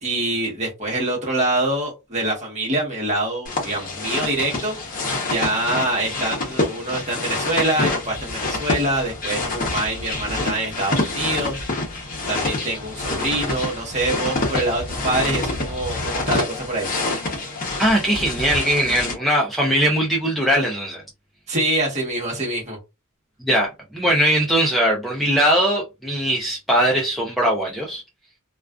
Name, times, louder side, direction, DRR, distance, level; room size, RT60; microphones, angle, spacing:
voice 1, 0.0-11.6 12.3-16.9 21.5-22.8, right 1 dB, 30° right, 1.0 m, -25 dB
sound 1, 3.5-19.1, left 2 dB, 40° left, 0.7 m, -27 dB
voice 2, 17.8-21.0 23.4-28.0, right 1 dB, ahead, 0.4 m, -20 dB
2.3 x 2.3 x 2.3 m
head